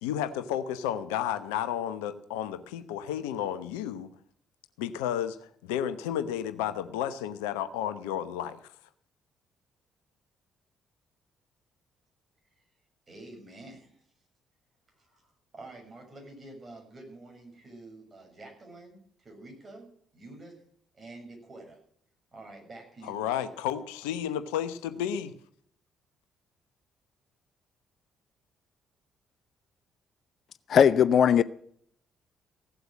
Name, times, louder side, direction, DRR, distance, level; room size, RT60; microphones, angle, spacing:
voice 1, 0.0-4.1 4.8-5.4 5.6-8.6 23.0-25.3, left 10 dB, 75° left, 0.8 m, -32 dB
voice 2, 13.1-14.0 14.9-19.9 20.1-20.6 20.9-21.8 22.3-23.4, right 2 dB, 35° right, 6.6 m, -48 dB
voice 3, 30.7-31.4, left 8 dB, 55° left, 0.5 m, -19 dB
16.5 x 8.0 x 7.5 m
figure-of-eight pair, 45°, 0 cm